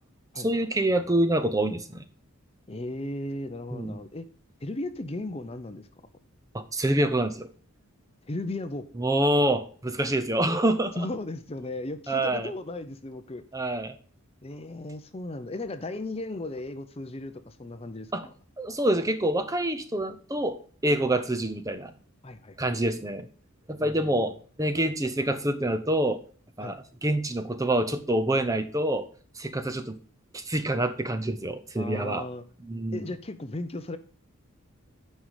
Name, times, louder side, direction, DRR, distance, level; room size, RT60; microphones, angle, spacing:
voice 1, 0.4-2.0 3.7-4.0 6.5-7.5 9.0-11.1 12.1-12.5 13.5-13.9 18.1-18.3 18.6-20.6 20.8-21.9 22.6-23.3 23.7-24.3 24.6-26.2 26.6-29.1 29.4-30.0 30.3-32.2 32.6-33.1, right 1 dB, 15° right, 9 dB, 0.7 m, -26 dB
voice 2, 2.7-4.3 4.6-5.9 8.3-8.9 10.9-13.4 14.4-18.1 22.2-22.6 23.8-24.3 26.6-26.7 31.8-32.4 32.9-34.0, left 2 dB, 25° left, 10 dB, 0.6 m, -36 dB
9.3 x 5.5 x 4.9 m, 0.43 s
head